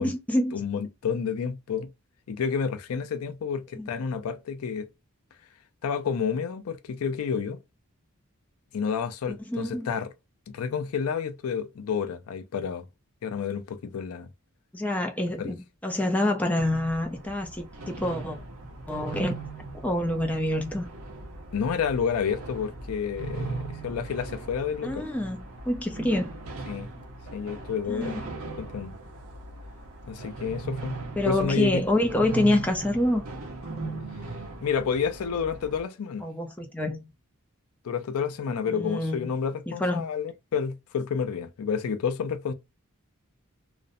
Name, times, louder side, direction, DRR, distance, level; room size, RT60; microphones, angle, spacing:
voice 1, 0.0-0.6 3.8-3.9 9.5-9.9 14.7-15.6 15.8-18.4 18.9-19.3 19.8-20.9 24.8-26.3 27.9-28.2 31.2-33.2 36.2-37.1 38.7-39.3 39.8-40.0, left 1 dB, 5° left, 0.4 m, -27 dB
voice 2, 0.5-1.9 2.3-4.9 5.8-7.6 8.7-10.1 10.5-12.8 13.2-14.3 15.4-15.5 21.5-25.1 26.7-26.9 27.3-28.2 28.6-28.9 30.0-31.0 31.2-31.8 34.6-36.3 37.8-42.5, left 6 dB, 80° left, 0.4 m, -30 dB
sound 1, 16.6-35.8, right 3 dB, 75° right, 0.6 m, -39 dB
2.5 x 2.0 x 2.5 m
head